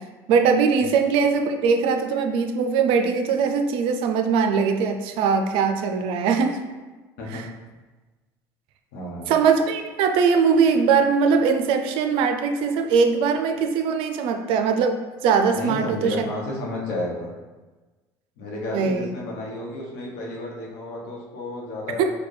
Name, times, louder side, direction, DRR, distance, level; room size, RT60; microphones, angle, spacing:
voice 1, 0.3-6.6 7.3-7.5 9.3-16.1 18.7-19.1 22.0-22.1, right 5 dB, 70° right, 6 dB, 0.4 m, -21 dB
voice 2, 8.9-9.3 15.5-17.3 18.4-22.0, left 1 dB, 85° left, -3 dB, 1.0 m, -32 dB
4.4 x 2.2 x 3.2 m, 1.3 s
supercardioid pair, 95°, 9 cm